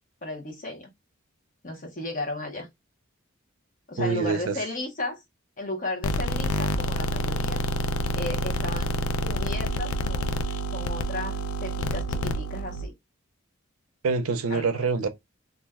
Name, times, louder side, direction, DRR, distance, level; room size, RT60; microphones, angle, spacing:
voice 1, 0.2-0.9 1.6-2.7 3.9-5.2 5.6-7.6 8.1-8.9 9.2-10.3 10.7-12.9 14.5-14.7, left 2 dB, 40° left, 0.8 m, -34 dB
voice 2, 4.0-4.6 14.0-15.1, right 4 dB, 75° right, 0.6 m, -25 dB
sound 1, 6.0-12.9, equal, 80° left, 0.4 m, -28 dB
2.5 x 2.2 x 3.4 m
head